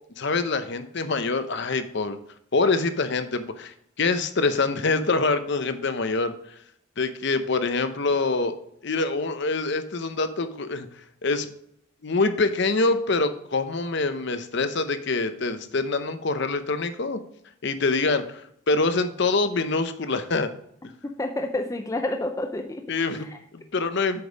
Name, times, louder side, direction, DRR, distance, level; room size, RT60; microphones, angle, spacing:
voice 1, 0.2-2.2 2.5-6.3 7.0-8.5 8.8-10.9 11.2-11.5 12.0-17.2 17.6-20.5 22.9-23.3 23.5-24.3, left 3 dB, 55° left, 10 dB, 0.7 m, -25 dB
voice 2, 21.0-22.9 23.2-23.4, left 2 dB, 15° left, 5 dB, 0.4 m, -29 dB
7.9 x 5.3 x 5.0 m, 0.70 s
head